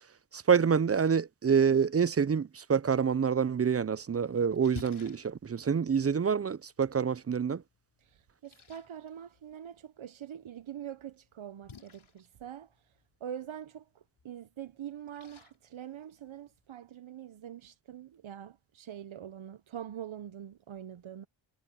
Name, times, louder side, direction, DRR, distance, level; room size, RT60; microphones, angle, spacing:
voice 1, 0.3-7.6, right 6 dB, 30° right, 0.4 m, -27 dB
Splash splatter, 3.9-16.7, left 5 dB, 90° left, 5.5 m, -55 dB
voice 2, 8.0-12.7 13.2-13.8 14.2-21.3, right 10 dB, 80° right, 0.8 m, -44 dB
wide cardioid pair, 75°, 47 cm